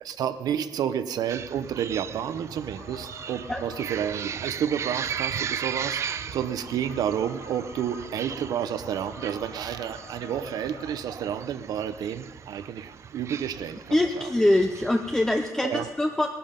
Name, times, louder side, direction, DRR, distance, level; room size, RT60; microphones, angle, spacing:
voice 1, 0.0-6.0 6.3-14.3 15.6-15.9, right 9 dB, 80° right, 12 dB, 0.7 m, -30 dB
sound 1, 1.3-15.5, right 8 dB, 45° right, 0.4 m, -37 dB
sound 2, 2.8-10.9, left 4 dB, 85° left, 2.7 m, -47 dB
voice 2, 13.9-16.3, left 1 dB, 10° left, 4 dB, 0.5 m, -23 dB
19.5 x 11.5 x 5.2 m, 1.4 s
wide cardioid pair, 155°, 7 cm